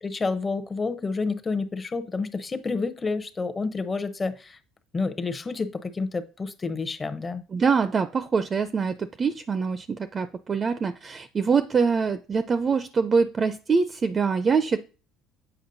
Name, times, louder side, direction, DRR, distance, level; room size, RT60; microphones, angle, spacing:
voice 1, 0.0-4.6 4.9-7.4, left 4 dB, 25° left, 0.7 m, -29 dB
voice 2, 7.5-14.8, right 5 dB, 30° right, 0.4 m, -24 dB
7.8 x 5.2 x 2.6 m
cardioid pair, 110°, 0 cm